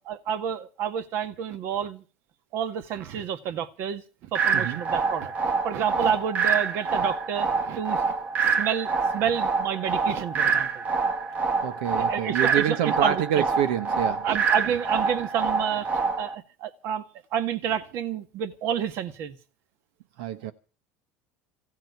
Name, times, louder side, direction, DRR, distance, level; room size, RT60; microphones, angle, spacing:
voice 1, 0.1-2.0 2.5-4.0 4.3-5.3 5.6-8.0 8.4-10.8 11.9-13.4 14.2-15.9 16.2-17.0 17.3-19.4, right 9 dB, 60° right, 1.8 m, -29 dB
sound 1, 4.3-16.3, right 5 dB, 35° right, 1.9 m, -26 dB
voice 2, 11.6-14.2 20.2-20.5, right 10 dB, 85° right, 1.1 m, -27 dB
16.0 x 7.5 x 9.6 m
supercardioid pair, 115°, 5 cm